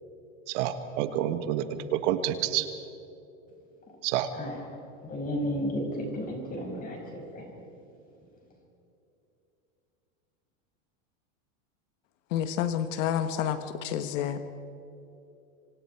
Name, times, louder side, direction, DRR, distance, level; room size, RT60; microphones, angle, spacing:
voice 1, 0.5-1.6 1.9-2.7 4.0-4.3, right 11 dB, 60° right, 9 dB, 1.6 m, -28 dB
voice 2, 5.0-7.4, equal, 20° left, 1 dB, 5.9 m, -33 dB
voice 3, 12.3-14.5, left 9 dB, 70° left, 9 dB, 1.4 m, -29 dB
26.5 x 26.0 x 4.6 m, 2.9 s
supercardioid pair, 150°, 39 cm